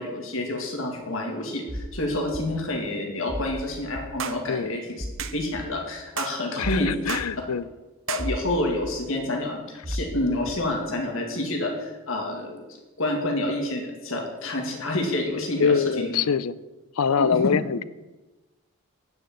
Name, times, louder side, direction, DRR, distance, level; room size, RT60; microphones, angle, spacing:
voice 1, 0.0-5.0 5.3-7.1 8.1-12.6 13.0-16.1 17.2-17.4, left 1 dB, 65° left, 1 dB, 2.2 m, -28 dB
sound 1, 1.7-1.9 2.3-2.5 3.3-3.5 4.0-4.1 5.0-5.2 5.6-5.7 6.6-6.8 7.2-7.3 8.2-8.5 8.8-8.9 9.8-10.1 10.5-10.6, equal, 25° right, 1.1 m, -32 dB
sound 2, 4.2-4.4 5.2-5.4 6.2-6.4 7.1-7.3 8.1-8.3, right 8 dB, 60° right, 0.7 m, -32 dB
voice 2, 6.6-7.7 15.6-16.5 17.0-17.8, left 6 dB, 80° left, 17 dB, 0.5 m, -24 dB
9.4 x 6.7 x 8.8 m, 1.1 s
head